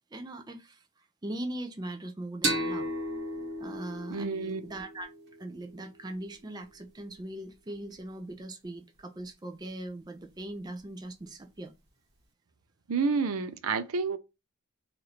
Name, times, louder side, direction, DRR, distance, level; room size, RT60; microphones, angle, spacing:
voice 1, 0.1-0.8 1.2-2.9 3.6-5.1 5.4-11.7, right 1 dB, 20° right, 0.4 m, -40 dB
sound 1, 2.4-5.8, right 1 dB, 50° right, 1.2 m, -34 dB
voice 2, 4.1-4.6 12.9-14.2, right 4 dB, 75° right, 0.5 m, -29 dB
3.0 x 2.6 x 4.1 m
head